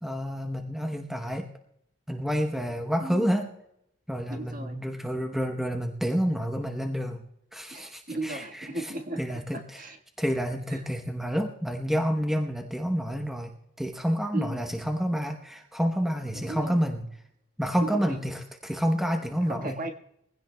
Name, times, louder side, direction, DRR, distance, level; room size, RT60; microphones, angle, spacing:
voice 1, 0.0-1.5 2.1-3.5 4.1-7.2 7.5-8.7 9.2-9.6 10.2-13.5 13.8-17.1 17.6-19.7, equal, ahead, 3 dB, 0.9 m, -29 dB
voice 2, 4.3-4.8 7.7-9.2 9.5-10.0 10.7-10.9 14.3-14.6 16.3-16.8 17.8-18.2 19.4-19.9, right 2 dB, 40° right, 4 dB, 1.5 m, -36 dB
23.0 x 16.5 x 2.2 m, 0.78 s
head